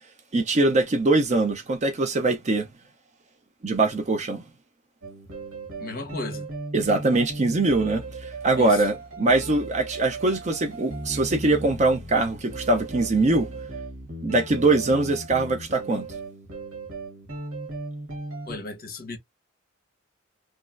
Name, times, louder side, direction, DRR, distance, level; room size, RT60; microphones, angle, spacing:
voice 1, 0.3-2.7 3.6-4.4 6.7-13.5 14.2-16.1, right 2 dB, 35° right, 0.5 m, -22 dB
sound 1, 5.0-18.6, right 2 dB, 90° right, 1.0 m, -37 dB
voice 2, 5.8-6.4 8.6-8.8 18.5-19.2, left 3 dB, 45° left, 0.8 m, -35 dB
3.0 x 2.4 x 2.4 m
head